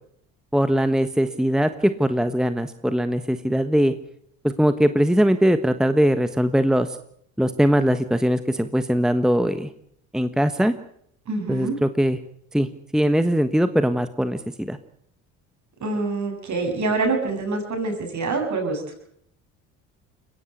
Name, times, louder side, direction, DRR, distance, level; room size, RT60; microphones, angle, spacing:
voice 1, 0.5-3.9 4.4-7.0 7.4-9.7 10.1-10.7 11.5-12.2 12.5-12.7 12.9-14.8, equal, ahead, 10 dB, 1.3 m, -21 dB
voice 2, 11.3-11.8 15.8-18.8, right 3 dB, 50° right, 4 dB, 8.0 m, -25 dB
22.0 x 17.0 x 8.3 m, 0.69 s
supercardioid pair, 70°, 37 cm